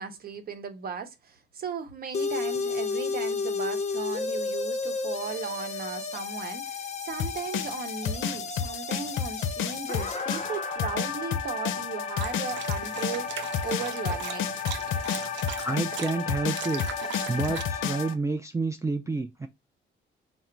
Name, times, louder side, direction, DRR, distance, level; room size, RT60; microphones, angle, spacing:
voice 1, 0.0-14.6, right 6 dB, 50° right, 0.9 m, -37 dB
sound 1, 2.1-18.1, left 4 dB, 35° left, 0.7 m, -33 dB
sound 2, 7.2-18.1, left 8 dB, 80° left, 0.5 m, -31 dB
sound 3, 12.2-16.1 16.5-17.7, right 9 dB, 70° right, 0.5 m, -40 dB
voice 2, 15.6-16.8 17.3-19.5, right 3 dB, 15° right, 0.3 m, -29 dB
3.8 x 2.0 x 4.4 m
cardioid pair, 90°, 20 cm